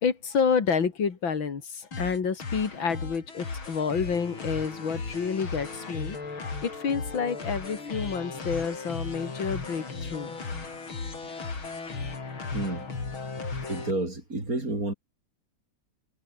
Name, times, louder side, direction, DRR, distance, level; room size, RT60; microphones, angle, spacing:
voice 1, 0.0-10.3, left 6 dB, 70° left, 3.0 m, -29 dB
sound 1, 1.9-13.9, left 4 dB, 90° left, 5.0 m, -36 dB
voice 2, 12.5-12.9 13.7-14.9, right 2 dB, 45° right, 6.3 m, -30 dB
omnidirectional pair, 2.2 m